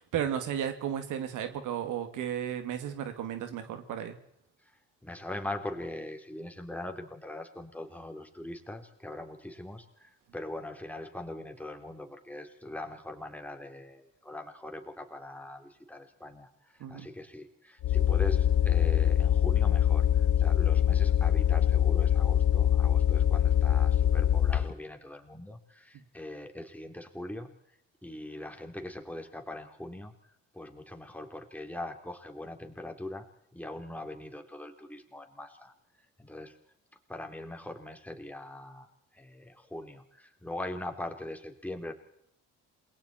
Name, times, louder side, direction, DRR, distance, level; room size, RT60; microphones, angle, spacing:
voice 1, 0.0-4.2 16.8-17.1 25.9-26.0, right 9 dB, 85° right, 8 dB, 2.4 m, -34 dB
voice 2, 4.6-33.3 33.5-36.6 37.1-41.9, left 1 dB, 5° left, 4 dB, 3.7 m, -42 dB
sound 1, 17.8-24.7, left 10 dB, 75° left, 0.9 m, -24 dB
28.0 x 21.5 x 4.4 m, 0.71 s
cardioid pair, 90°, 30 cm